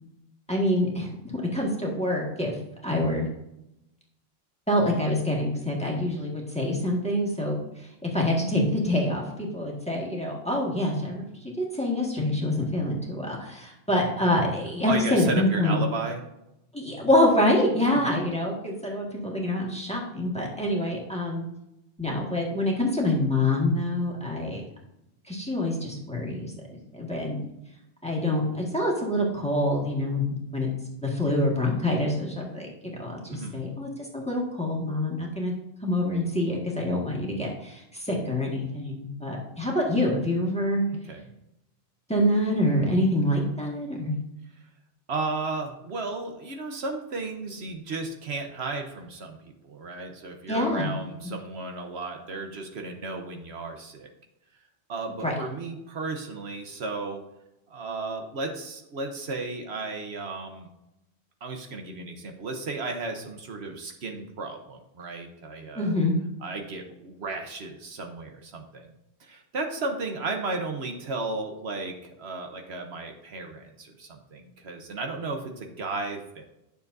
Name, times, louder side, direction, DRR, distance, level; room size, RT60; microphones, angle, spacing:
voice 1, 0.5-2.5 2.8-3.3 4.7-15.8 16.7-21.4 22.0-24.6 25.3-26.5 26.9-27.4 28.0-30.7 31.0-35.5 35.8-40.8 42.1-44.1 50.5-50.9 55.2-55.4 65.7-66.1, left 1 dB, 5° left, -3 dB, 1.7 m, -26 dB
voice 2, 14.9-16.2 17.9-18.1 33.3-33.6 40.9-41.3 45.1-54.1 54.9-57.2 57.7-60.7 61.4-65.9 66.4-68.9 69.2-76.4, right 3 dB, 70° right, 4 dB, 1.2 m, -34 dB
10.5 x 6.7 x 2.6 m, 0.85 s
omnidirectional pair, 1.1 m